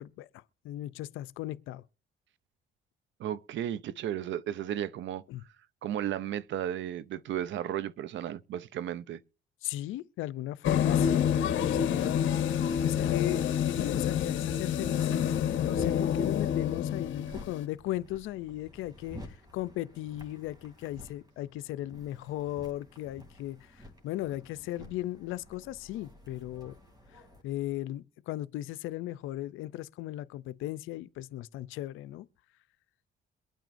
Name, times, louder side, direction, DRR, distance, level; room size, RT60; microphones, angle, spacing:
voice 1, 0.0-1.8 5.3-5.4 9.6-11.3 11.6-12.3 12.8-19.2 19.5-26.7 27.1-32.3, left 15 dB, 90° left, 0.5 m, -37 dB
voice 2, 3.2-5.2 5.8-9.2, right 10 dB, 70° right, 0.5 m, -34 dB
sound 1, 10.6-17.6, left 9 dB, 75° left, 0.9 m, -28 dB
sound 2, 14.8-27.4, left 1 dB, 20° right, 2.8 m, -51 dB
22.5 x 9.0 x 2.6 m
cardioid pair, 90°, 20 cm